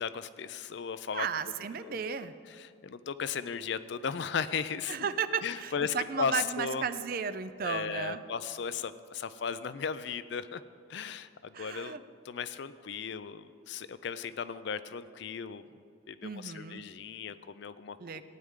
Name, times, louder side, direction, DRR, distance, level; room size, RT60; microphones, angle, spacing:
voice 1, 0.0-1.3 1.9-2.0 2.5-5.0 5.4-6.9 7.6-10.6 10.9-12.0 12.3-15.6 16.1-18.2, left 6 dB, 55° left, 13 dB, 0.4 m, -36 dB
voice 2, 1.1-2.3 4.9-8.2 11.5-12.0 16.2-16.9 18.0-18.2, right 6 dB, 45° right, 13 dB, 0.4 m, -34 dB
15.5 x 9.7 x 3.7 m, 2.4 s
head